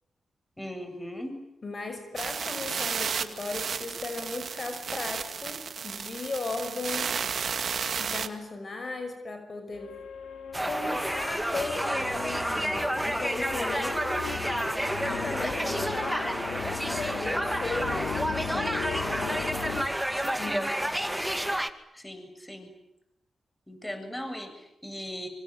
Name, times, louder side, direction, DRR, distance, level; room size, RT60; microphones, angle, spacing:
voice 1, 0.6-1.3 21.0-21.1 21.9-22.7 23.7-25.3, equal, 15° left, 7 dB, 7.9 m, -38 dB
voice 2, 1.6-7.2 8.0-10.0 10.6-14.4 15.1-16.4 16.7-19.9 20.3-21.1, left 3 dB, 50° left, 7 dB, 5.7 m, -37 dB
sound 1, 2.2-8.3, right 6 dB, 65° right, 2.1 m, -33 dB
sound 2, 9.7-19.9, left 7 dB, 85° left, 2.6 m, -38 dB
sound 3, 10.5-21.7, right 1 dB, 5° right, 2.3 m, -30 dB
26.0 x 24.5 x 9.1 m, 0.87 s
cardioid pair, 50°, 0 cm